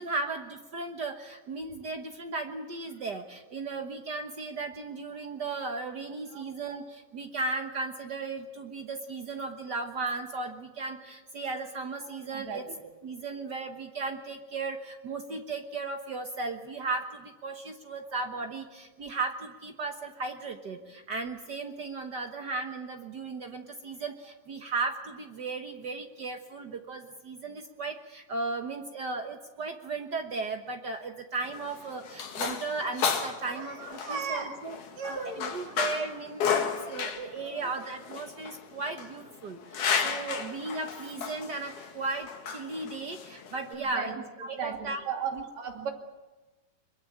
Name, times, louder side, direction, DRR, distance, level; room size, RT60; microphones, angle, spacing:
voice 1, 0.0-12.7 13.0-34.8 35.1-45.0 45.3-45.4, right 3 dB, 80° right, 4 dB, 0.9 m, -36 dB
voice 2, 12.3-12.8 33.4-34.6 35.0-35.8 36.9-37.7 43.7-44.2 44.6-45.9, right 6 dB, 55° right, 3 dB, 3.8 m, -37 dB
sound 1, 31.4-43.8, left 6 dB, 65° left, 3.4 m, -33 dB
23.0 x 22.5 x 8.7 m, 1.2 s
omnidirectional pair, 3.9 m